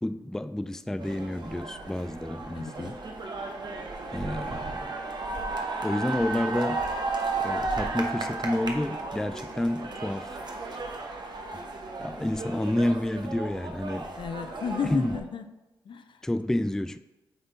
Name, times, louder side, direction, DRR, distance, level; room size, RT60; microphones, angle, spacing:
voice 1, 0.0-3.0 4.1-4.9 5.8-6.9 7.4-10.4 12.0-14.1 14.9-15.1 16.2-17.0, left 1 dB, 5° left, 11 dB, 0.3 m, -29 dB
sound 1, 1.0-15.2, right 3 dB, 50° right, 1.0 m, -34 dB
voice 2, 2.5-3.0 14.2-15.5 15.8-16.2, left 6 dB, 60° left, 9 dB, 0.5 m, -33 dB
8.0 x 3.5 x 3.9 m, 1.0 s
supercardioid pair, 45°, 9 cm